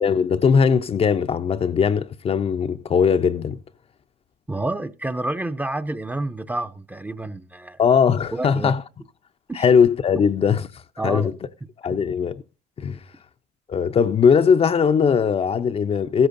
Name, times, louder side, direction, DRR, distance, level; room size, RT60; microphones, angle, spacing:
voice 1, 0.0-3.6 7.8-8.8 9.6-11.3 11.8-12.4 12.8-13.0 13.7-16.3, left 6 dB, 35° left, 0.6 m, -19 dB
voice 2, 4.5-7.8 8.3-8.7 9.5-9.6 11.0-11.3, right 2 dB, 10° right, 0.6 m, -29 dB
15.0 x 13.5 x 2.6 m
cardioid pair, 110°, 17 cm